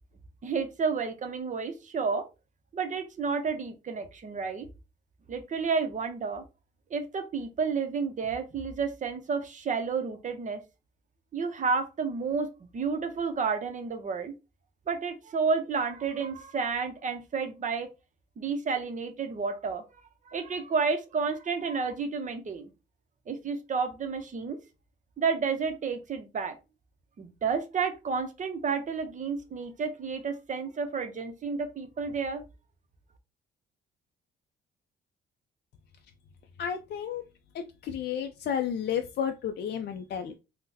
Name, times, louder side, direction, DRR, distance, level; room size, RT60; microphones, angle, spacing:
voice 1, 0.4-2.3 2.7-4.7 5.3-6.4 6.9-10.6 11.3-14.3 14.9-17.9 18.4-19.9 20.3-22.7 23.3-24.6 25.2-26.6 27.2-32.4, right 5 dB, 40° right, 8 dB, 0.6 m, -31 dB
voice 2, 36.6-37.2 37.5-40.3, left 8 dB, 55° left, 6 dB, 0.4 m, -32 dB
3.7 x 2.1 x 2.6 m, 0.28 s
cardioid pair, 90°, 20 cm